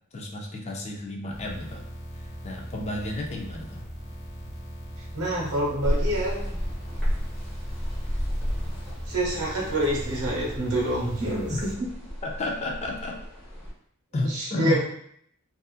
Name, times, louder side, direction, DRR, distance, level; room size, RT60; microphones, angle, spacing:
voice 1, 0.1-1.8 2.4-3.8 11.5-11.6 12.2-13.2 14.1-14.8, left 1 dB, 30° left, 0 dB, 0.4 m, -31 dB
sound 1, 1.3-11.7, equal, 55° left, 0.8 m, -40 dB
voice 2, 5.1-6.5 9.1-11.9 14.3-14.8, right 1 dB, 85° right, -3 dB, 1.0 m, -27 dB
sound 2, 5.8-13.7, equal, 5° left, 0.9 m, -32 dB
2.6 x 2.5 x 2.3 m, 0.68 s
head